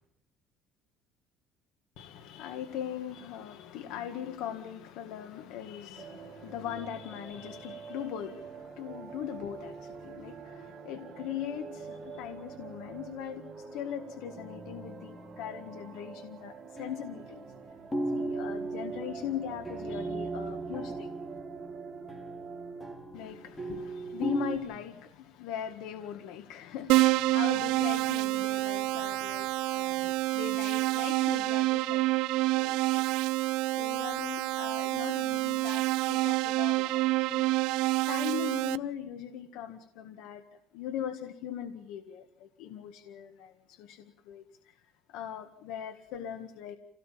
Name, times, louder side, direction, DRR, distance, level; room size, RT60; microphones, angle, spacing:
voice 1, 2.0-17.5 18.1-21.1 23.1-32.1 32.5-33.3 33.8-37.5 38.1-40.4 40.7-44.7 45.1-46.8, left 10 dB, 75° left, 1.8 m, -40 dB
sound 1, 6.0-23.0, right 5 dB, 30° right, 2.7 m, -46 dB
sound 2, 14.4-15.9 16.8-24.6, right 2 dB, 15° left, 4.5 m, -37 dB
Keyboard (musical), 26.9-38.8, right 19 dB, 80° right, 0.8 m, -28 dB
27.0 x 17.5 x 7.4 m
cardioid pair, 150°, 0 cm